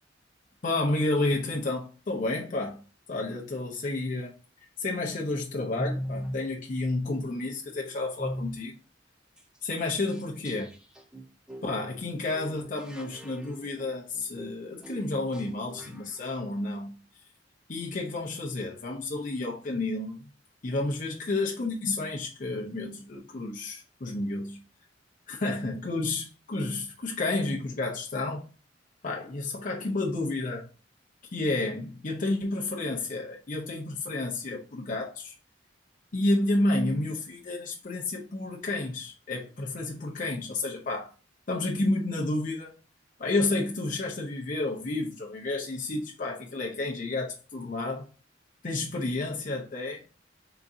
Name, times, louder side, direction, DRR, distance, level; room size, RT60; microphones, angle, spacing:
voice 1, 0.6-2.8 3.1-4.3 4.8-8.8 9.6-10.7 11.6-16.9 17.7-20.2 20.6-24.6 25.3-28.5 29.0-30.7 31.3-35.3 36.1-41.1 41.5-42.7 43.2-48.1 48.6-50.0, left 2 dB, 45° left, 0.6 m, -30 dB
sound 1, 5.7-6.5 8.2-8.7 9.4-9.5 9.8-9.9 10.1-16.2, equal, 5° right, 0.4 m, -39 dB
3.9 x 2.6 x 3.5 m
head